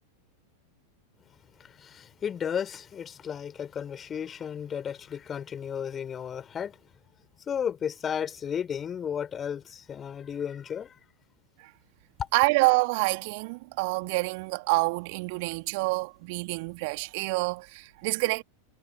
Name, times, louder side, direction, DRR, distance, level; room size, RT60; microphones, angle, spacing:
voice 1, 1.6-6.8 7.5-10.9 12.2-12.3, left 8 dB, 25° left, 4.7 m, -33 dB
voice 2, 12.3-18.4, right 27 dB, 45° right, 3.0 m, -27 dB
figure-of-eight pair, 90°, 0 cm